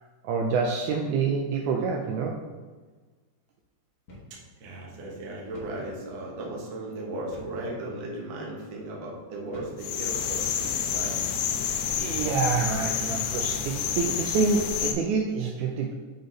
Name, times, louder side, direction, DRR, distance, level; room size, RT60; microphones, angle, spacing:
voice 1, 0.2-2.4 11.8-15.9, right 4 dB, 80° right, 1 dB, 1.8 m, -27 dB
sound 1, 4.1-4.4 4.7-4.8 5.5-5.8 7.3-7.7 8.3-8.5 9.5-9.9 10.6-10.8 11.8-12.2, left 1 dB, 55° left, 1.0 m, -47 dB
voice 2, 4.6-10.5 10.9-11.1, right 1 dB, 60° right, -3 dB, 1.3 m, -36 dB
sound 2, 9.8-14.9, left 8 dB, 80° left, 1.7 m, -29 dB
6.8 x 4.0 x 3.9 m, 1.4 s
omnidirectional pair, 3.9 m